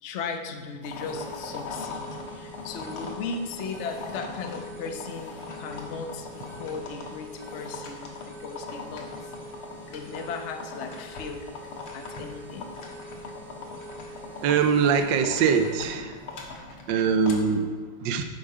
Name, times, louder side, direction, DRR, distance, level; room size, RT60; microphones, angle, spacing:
voice 1, 0.0-9.6 9.9-11.4 11.9-12.7, left 4 dB, 55° left, 5 dB, 0.8 m, -37 dB
sound 1, 0.8-17.3, left 4 dB, 85° left, 2.2 m, -40 dB
sound 2, 1.0-15.9, right 1 dB, 30° right, 1.3 m, -45 dB
voice 2, 14.4-16.2 16.9-18.2, right 6 dB, 70° right, 7 dB, 1.2 m, -23 dB
11.0 x 7.2 x 4.9 m, 1.5 s
omnidirectional pair, 2.3 m